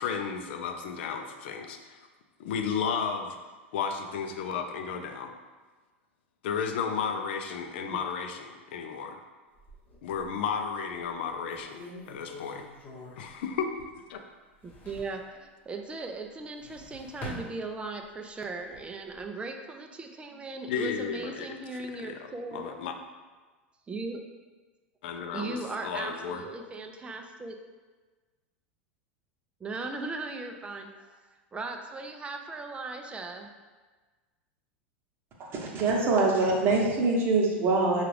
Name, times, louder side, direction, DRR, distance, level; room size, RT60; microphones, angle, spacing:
voice 1, 0.0-2.0 2.4-3.4 3.7-5.3 6.4-9.2 10.0-11.8 12.1-12.6 13.2-13.7 14.1-14.2 20.7-21.5 22.0-22.2 22.5-22.9 25.0-26.4, left 6 dB, 65° left, 5 dB, 0.5 m, -33 dB
sound 1, 9.6-10.5 11.0-11.1 11.5-14.1 14.4-15.3 16.4-18.2 18.6-19.2, left 1 dB, 25° left, 1.1 m, -45 dB
voice 2, 14.6-22.7 23.9-24.3 25.3-27.6 29.6-33.5, right 3 dB, 15° right, 4 dB, 0.4 m, -38 dB
voice 3, 35.5-38.0, right 3 dB, 40° right, -2 dB, 1.0 m, -24 dB
5.7 x 2.4 x 3.2 m, 1.3 s
hypercardioid pair, 85°, 6 cm